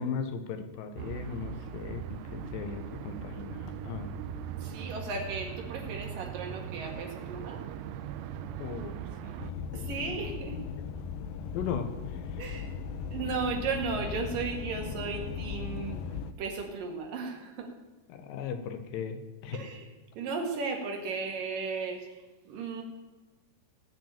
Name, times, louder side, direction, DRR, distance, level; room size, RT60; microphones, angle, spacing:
voice 1, 0.0-4.1 8.6-10.3 11.5-12.6 18.1-19.6, left 6 dB, 70° left, 7 dB, 2.5 m, -38 dB
sound 1, 1.0-9.5, right 8 dB, 85° right, 2.9 m, -40 dB
voice 2, 4.6-7.6 9.7-10.6 12.4-12.7 13.1-16.0 16.4-17.7 19.5-19.8 20.2-22.2 22.5-22.8, right 4 dB, 60° right, 3 dB, 3.3 m, -35 dB
sound 2, 9.4-16.3, left 6 dB, 85° left, 3.0 m, -37 dB
18.0 x 6.1 x 8.9 m, 1.2 s
omnidirectional pair, 4.8 m